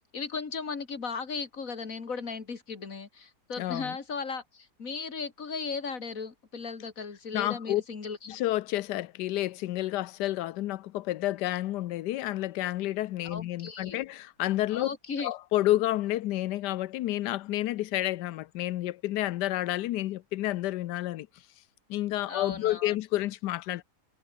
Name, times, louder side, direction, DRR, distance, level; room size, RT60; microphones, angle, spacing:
voice 1, 0.1-8.4 13.2-14.0 14.7-15.3 22.2-23.0, left 5 dB, 55° left, 2.7 m, -36 dB
voice 2, 3.6-3.9 7.3-7.8 8.3-14.9 15.2-21.3 21.9-23.8, left 15 dB, 90° left, 1.2 m, -30 dB
omnidirectional pair, 1.7 m